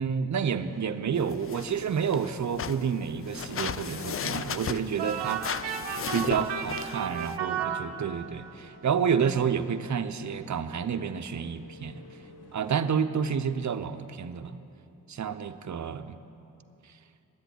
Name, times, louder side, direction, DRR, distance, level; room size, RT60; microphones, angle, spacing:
voice 1, 0.0-5.4 6.1-12.0 12.5-14.6 15.1-16.2, right 7 dB, 45° right, 10 dB, 0.7 m, -29 dB
sound 1, 0.5-12.8, left 1 dB, 70° left, 1.3 m, -51 dB
sound 2, 1.2-7.4, left 8 dB, 35° left, 0.4 m, -36 dB
sound 3, 5.0-8.5, right 8 dB, 85° right, 0.8 m, -33 dB
11.0 x 8.0 x 9.2 m, 2.9 s
supercardioid pair, 45°, 40 cm